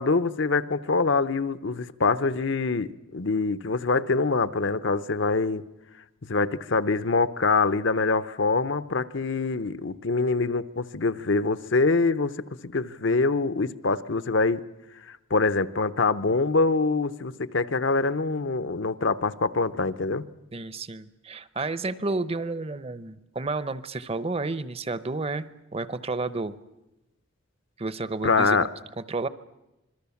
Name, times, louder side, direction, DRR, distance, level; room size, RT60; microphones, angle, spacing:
voice 1, 0.0-5.6 6.3-14.6 15.1-20.2 28.2-28.7, left 3 dB, 65° left, 14 dB, 0.8 m, -25 dB
voice 2, 20.5-25.5 25.7-26.6 27.8-28.6 29.0-29.3, right 3 dB, 30° right, 15 dB, 0.7 m, -31 dB
26.0 x 22.0 x 7.1 m, 0.96 s
head